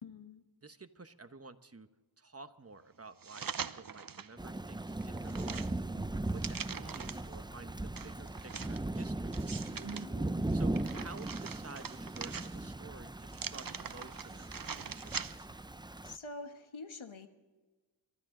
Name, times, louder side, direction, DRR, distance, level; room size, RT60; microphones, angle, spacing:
voice 1, 0.0-0.4 10.0-10.5 16.0-17.3, left 3 dB, 80° left, 7 dB, 1.4 m, -47 dB
voice 2, 0.6-1.9 2.2-5.8 6.3-9.4 10.5-15.2, right 3 dB, 30° right, 10 dB, 1.1 m, -52 dB
sound 1, 3.2-4.3 4.8-7.3 8.0-10.0 10.5-12.8 13.3-15.6 16.0-16.1, right 6 dB, 45° right, 0.7 m, -43 dB
Thunder / Rain, 4.4-16.2, right 2 dB, 10° right, 0.5 m, -38 dB
28.5 x 13.0 x 3.9 m, 1.3 s
wide cardioid pair, 40°, 47 cm